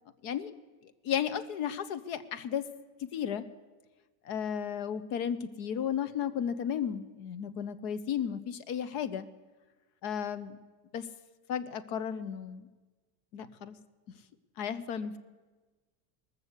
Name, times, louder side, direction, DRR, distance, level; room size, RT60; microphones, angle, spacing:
voice 1, 0.2-0.5 1.0-2.7 3.0-3.4 4.2-9.3 10.0-10.6 10.9-11.1 11.5-12.7 13.3-13.7 14.6-15.2, left 8 dB, 45° left, 13 dB, 0.7 m, -34 dB
19.5 x 6.9 x 8.1 m, 1.3 s
supercardioid pair, 165°, 49 cm